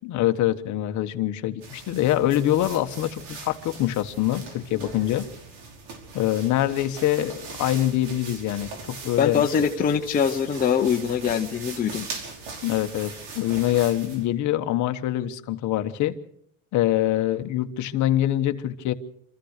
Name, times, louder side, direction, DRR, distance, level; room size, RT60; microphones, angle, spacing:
voice 1, 0.0-5.2 6.1-9.4 12.6-16.1 16.7-18.9, left 13 dB, 45° left, 1.3 m, -24 dB
sound 1, 1.6-14.3, right 4 dB, 70° right, 5.2 m, -40 dB
voice 2, 9.2-12.1, left 7 dB, 20° left, 0.8 m, -23 dB
26.5 x 15.0 x 6.6 m
cardioid pair, 165°, 42 cm